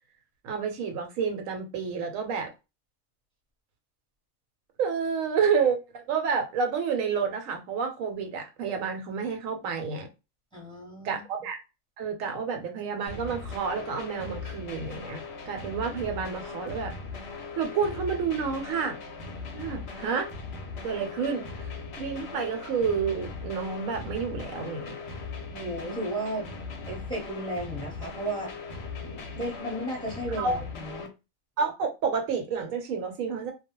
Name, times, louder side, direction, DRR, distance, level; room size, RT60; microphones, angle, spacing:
voice 1, 0.4-2.5 4.8-10.1 11.0-11.6 12.0-16.9 17.6-19.0 19.5-20.3 20.8-21.7 22.0-25.0 30.4-30.6 31.6-33.5, right 6 dB, 80° right, 1.0 m, -29 dB
voice 2, 10.5-11.2 25.5-26.5 26.9-28.5 29.0-31.1, right 1 dB, 5° left, 0.7 m, -34 dB
sound 1, 13.1-31.1, left 4 dB, 60° left, 0.8 m, -39 dB
2.3 x 2.1 x 2.9 m
omnidirectional pair, 1.4 m